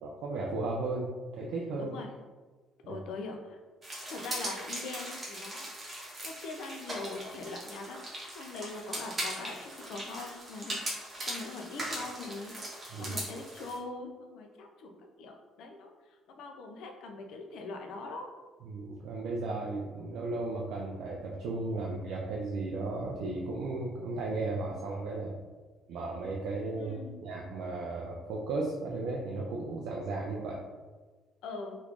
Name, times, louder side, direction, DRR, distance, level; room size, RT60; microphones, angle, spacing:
voice 1, 0.0-1.9 2.8-3.0 12.9-13.2 18.6-25.4 25.9-30.6, right 3 dB, 65° right, -2 dB, 0.4 m, -35 dB
voice 2, 1.8-2.1 2.9-3.6 4.1-8.0 8.3-10.8 11.3-12.5 13.0-18.3 26.8-27.2 31.4-31.8, left 3 dB, 65° left, 3 dB, 0.5 m, -42 dB
sound 1, 3.8-13.8, right 1 dB, 20° right, 0.8 m, -40 dB
3.0 x 2.4 x 3.4 m, 1.3 s
cardioid pair, 165°, 0 cm